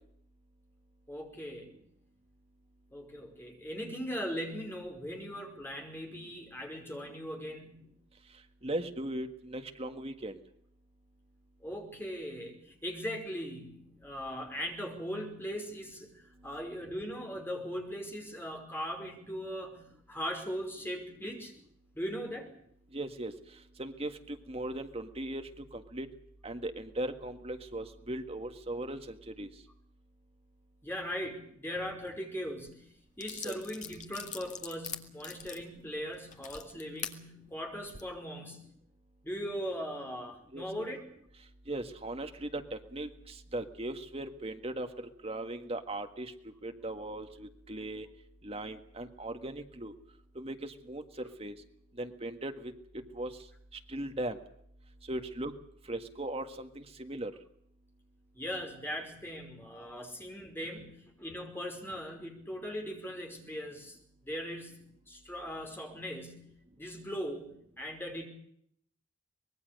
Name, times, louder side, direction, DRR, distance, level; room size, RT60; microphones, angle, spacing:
voice 1, 1.1-1.7 2.9-7.9 11.6-21.5 21.9-22.5 30.8-32.9 33.2-38.7 39.2-41.0 58.3-64.0 64.2-68.3, equal, 10° left, 2 dB, 5.1 m, -39 dB
voice 2, 8.6-10.4 22.9-23.3 23.8-26.1 26.4-29.5 33.4-33.6 40.5-40.9 41.7-46.3 46.6-48.1 48.4-49.9 50.4-51.0 51.4-51.5 52.0-52.7 53.1-53.3 53.9-54.4 55.1-55.5 55.9-57.3, right 1 dB, 30° right, 7 dB, 1.7 m, -38 dB
sound 1, 32.7-32.8 33.2-37.2 37.7-38.0, left 8 dB, 35° left, 2.1 m, -43 dB
24.5 x 21.0 x 6.7 m, 0.69 s
head